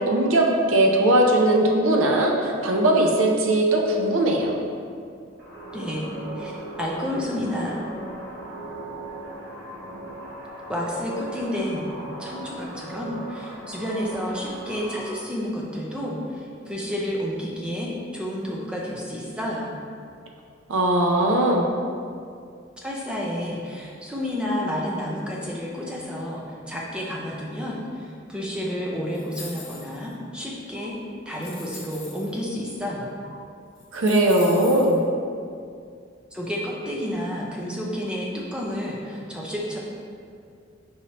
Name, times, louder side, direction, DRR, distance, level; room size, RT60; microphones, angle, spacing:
voice 1, 0.0-4.5 20.7-21.7 33.9-35.0, right 1 dB, 80° right, 1 dB, 0.6 m, -19 dB
sound 1, 5.4-15.2, right 1 dB, 60° right, 0.9 m, -38 dB
voice 2, 5.7-6.1 6.4-6.5 6.8-7.7 10.7-11.9 12.2-19.7 22.8-31.0 31.3-33.1 36.3-39.8, equal, 5° right, -4 dB, 0.5 m, -30 dB
sound 2, 29.1-30.1 30.8-30.9 31.3-32.3 33.2-33.3 33.7-35.0, left 4 dB, 60° left, 0.9 m, -42 dB
5.4 x 3.1 x 2.8 m, 2.4 s
head